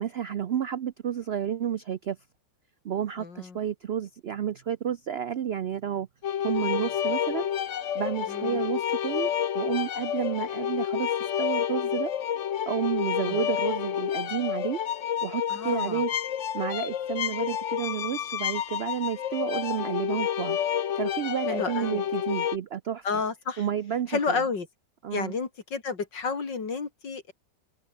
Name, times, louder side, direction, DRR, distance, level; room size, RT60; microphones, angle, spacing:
voice 1, 0.0-2.2 2.8-6.1 6.4-7.5 7.9-12.1 12.7-14.8 15.2-16.1 16.5-20.6 21.0-23.2 23.6-24.4 25.0-25.3, right 9 dB, 85° right, 0.5 m, -31 dB
voice 2, 3.2-3.6 8.3-8.6 13.3-13.4 15.5-16.0 21.5-22.0 23.0-23.6 24.1-24.7 25.1-27.3, left 5 dB, 85° left, 3.6 m, -31 dB
sound 1, 6.2-22.6, left 9 dB, 55° left, 1.0 m, -29 dB
omnidirectional pair, 1.9 m